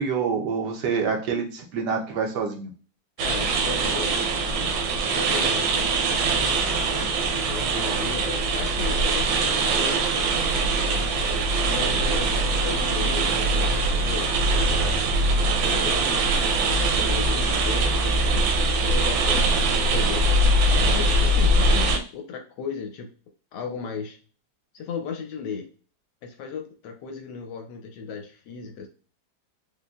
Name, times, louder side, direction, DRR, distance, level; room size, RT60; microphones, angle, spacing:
voice 1, 0.0-2.7, right 5 dB, 70° right, 2 dB, 1.2 m, -26 dB
voice 2, 3.2-4.2 4.5-4.8 5.1-5.9 7.1-11.0 11.6-14.3 15.6-18.5 18.8-20.2 20.9-23.1 23.5-24.2 24.7-25.7 26.2-28.9, left 5 dB, 75° left, 4 dB, 1.1 m, -36 dB
sound 1, 3.2-22.0, right 2 dB, 90° right, 1.4 m, -22 dB
4.9 x 2.2 x 2.3 m, 0.38 s
omnidirectional pair, 2.1 m